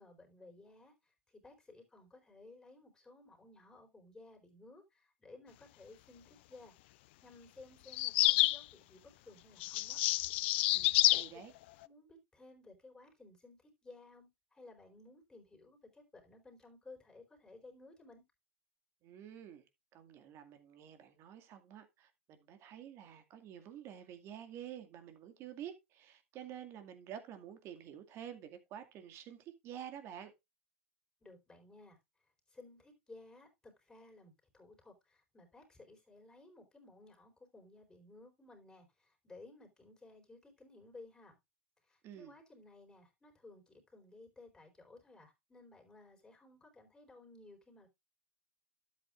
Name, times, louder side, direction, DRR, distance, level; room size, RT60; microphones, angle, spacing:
voice 1, 0.0-6.7 7.2-10.0 11.1-11.2 11.8-18.2 31.2-32.0 32.5-41.4 41.8-47.9, left 2 dB, 10° left, 4.3 m, -57 dB
sound 1, 7.9-8.6 9.6-11.3, left 19 dB, 55° left, 0.4 m, -28 dB
voice 2, 10.7-11.5 19.0-19.7 19.9-30.3 42.0-42.3, right 10 dB, 40° right, 2.1 m, -49 dB
12.5 x 8.1 x 2.5 m
hypercardioid pair, 105°, 7 cm